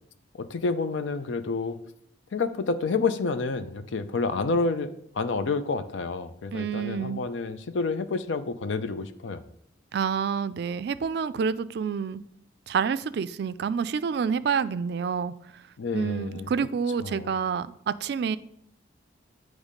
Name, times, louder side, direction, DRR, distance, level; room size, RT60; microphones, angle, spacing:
voice 1, 0.3-1.8 2.3-9.4 15.8-16.5 17.0-17.3, left 4 dB, 85° left, 11 dB, 0.5 m, -29 dB
voice 2, 6.5-7.2 9.9-12.2 12.7-15.3 15.9-18.4, right 6 dB, 60° right, 14 dB, 0.3 m, -28 dB
8.1 x 3.2 x 5.1 m, 0.71 s
head